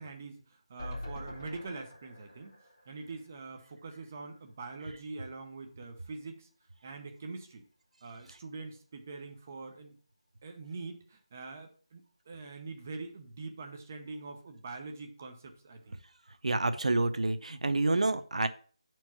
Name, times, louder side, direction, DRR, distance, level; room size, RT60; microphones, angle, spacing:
voice 1, 0.0-2.6 2.9-6.5 6.8-7.7 8.0-10.0 10.4-16.0, right 3 dB, 20° right, 4 dB, 0.7 m, -44 dB
sound 1, 0.8-4.0 4.4-4.5 4.7-4.8, left 1 dB, 30° left, 1.9 m, -45 dB
voice 2, 16.4-18.5, right 2 dB, 85° right, 11 dB, 0.7 m, -28 dB
5.3 x 4.6 x 5.8 m, 0.42 s
figure-of-eight pair, 180°, 3 cm